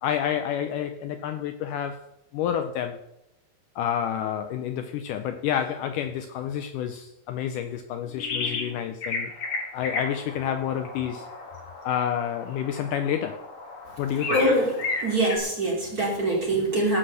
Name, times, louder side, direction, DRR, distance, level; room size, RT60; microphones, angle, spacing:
voice 1, 0.0-2.1 2.3-3.0 3.8-9.3 9.7-11.3 11.8-13.4 14.0-14.4, left 9 dB, 90° left, 8 dB, 1.8 m, -29 dB
sound 1, 8.2-8.7 9.0-15.4, left 3 dB, 45° left, 2.2 m, -34 dB
voice 2, 14.3-14.7 15.0-17.0, right 1 dB, 25° right, -1 dB, 2.4 m, -23 dB
15.5 x 6.2 x 6.7 m, 0.85 s
omnidirectional pair, 4.5 m